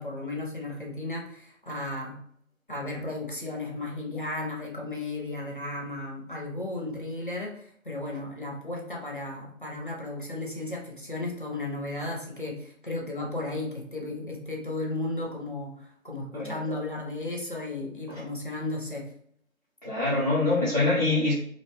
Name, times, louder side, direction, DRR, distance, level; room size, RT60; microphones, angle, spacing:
voice 1, 0.0-2.2 2.7-19.0, left 2 dB, 40° left, -1 dB, 0.5 m, -34 dB
voice 2, 19.8-21.3, left 2 dB, 30° right, -9 dB, 0.6 m, -24 dB
2.4 x 2.2 x 3.3 m, 0.65 s
figure-of-eight pair, 170°, 41 cm